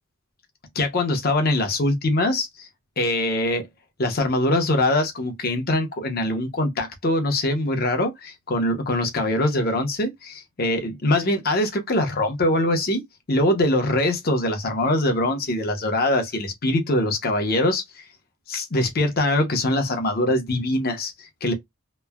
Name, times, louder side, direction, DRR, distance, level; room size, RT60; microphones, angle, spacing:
voice 1, 0.7-2.7 3.0-3.6 4.0-13.0 13.3-18.0 18.5-21.5, left 1 dB, 45° left, 0.8 m, -23 dB
3.0 x 2.1 x 2.2 m
head